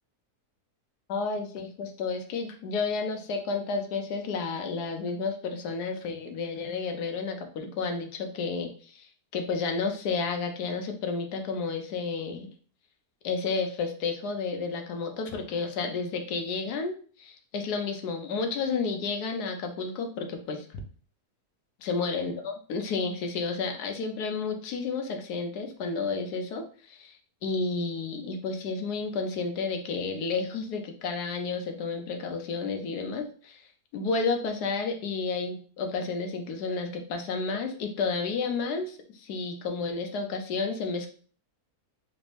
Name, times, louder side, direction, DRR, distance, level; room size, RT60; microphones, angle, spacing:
voice 1, 1.1-12.5 13.2-20.8 21.8-33.6 33.9-41.1, left 4 dB, 85° left, 5 dB, 1.3 m, -31 dB
4.1 x 2.6 x 3.2 m, 0.43 s
omnidirectional pair, 1.7 m